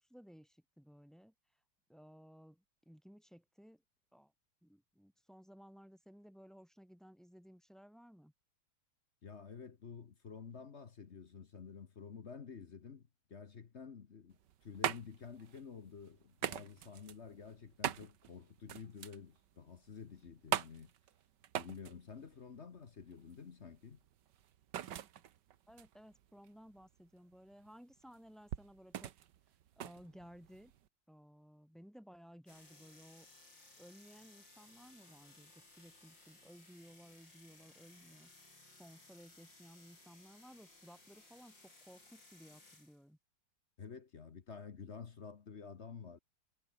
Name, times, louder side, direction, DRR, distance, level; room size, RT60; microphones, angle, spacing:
voice 1, 0.0-1.3 1.9-3.8 4.1-4.3 4.6-8.3 25.7-29.1 29.8-30.7 31.1-33.3 33.8-38.3 38.8-43.2, equal, ahead, 5.2 m, -58 dB
voice 2, 9.2-20.9 21.6-24.0 43.8-46.2, left 6 dB, 40° left, 1.1 m, -50 dB
sound 1, 14.3-30.9, right 11 dB, 60° right, 1.5 m, -43 dB
sound 2, 32.5-43.0, left 2 dB, 55° left, 8.6 m, -61 dB
omnidirectional pair, 2.4 m